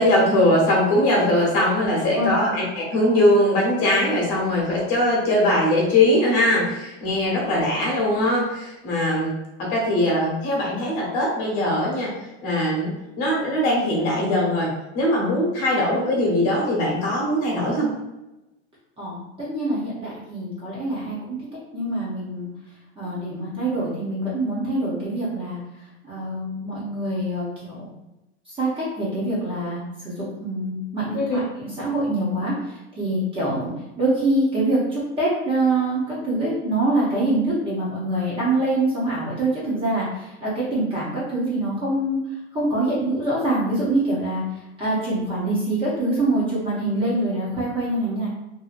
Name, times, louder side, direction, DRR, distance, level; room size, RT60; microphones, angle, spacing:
voice 1, 0.0-9.3 9.6-12.2 12.4-17.9 31.1-31.4, left 1 dB, 45° left, -3 dB, 1.1 m, -21 dB
voice 2, 19.0-22.5 23.0-25.6 26.0-27.9 28.5-42.2 42.5-44.4 44.8-48.3, right 2 dB, 15° right, -7 dB, 0.8 m, -25 dB
2.8 x 2.6 x 2.5 m, 0.96 s
supercardioid pair, 145°, 34 cm